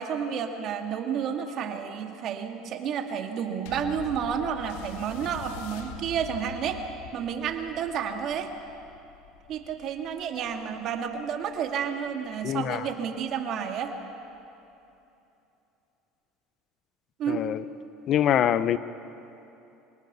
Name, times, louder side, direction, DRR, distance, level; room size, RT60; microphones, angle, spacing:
voice 1, 0.0-6.8 7.1-8.5 9.5-13.9 17.2-17.4, right 7 dB, 55° right, 4 dB, 2.2 m, -31 dB
sound 1, 3.7-12.4 13.2-13.3, left 9 dB, 80° left, 1.6 m, -45 dB
voice 2, 12.4-12.9 17.3-17.6 18.1-18.8, left 10 dB, 50° left, 14 dB, 0.8 m, -24 dB
24.0 x 18.5 x 6.9 m, 2.8 s
supercardioid pair, 95°, 0 cm